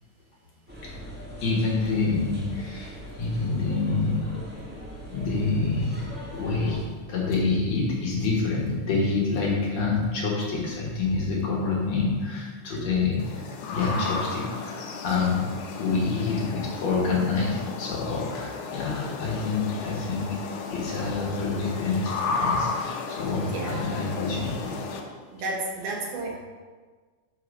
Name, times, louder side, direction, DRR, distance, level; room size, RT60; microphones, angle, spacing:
sound 1, 0.7-6.8, equal, 5° right, 0.7 m, -41 dB
voice 1, 1.4-4.3 5.1-6.0 6.3-6.8 7.1-13.4 13.7-15.5 15.8-24.7, left 4 dB, 65° left, -4 dB, 2.5 m, -27 dB
voice 2, 12.7-13.1 13.9-14.2 23.4-23.8 25.3-26.4, right 3 dB, 75° right, -1 dB, 2.7 m, -33 dB
sound 2, 13.2-25.0, left 4 dB, 85° left, 2.4 m, -33 dB
6.1 x 4.8 x 6.6 m, 1.4 s
omnidirectional pair, 3.6 m